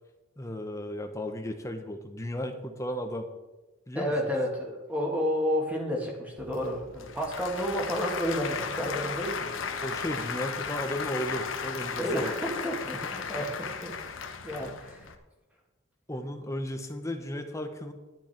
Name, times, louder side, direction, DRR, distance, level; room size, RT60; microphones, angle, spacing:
voice 1, 0.4-3.3 3.9-4.3 9.8-12.3 12.9-13.0 14.6-14.7 16.1-17.9, equal, 15° left, 6 dB, 1.0 m, -35 dB
voice 2, 3.9-9.5 12.0-15.0, equal, 10° right, -1 dB, 2.3 m, -31 dB
Applause / Crowd, 6.4-15.1, left 5 dB, 75° left, 1.0 m, -35 dB
11.5 x 10.5 x 4.6 m, 1.1 s
head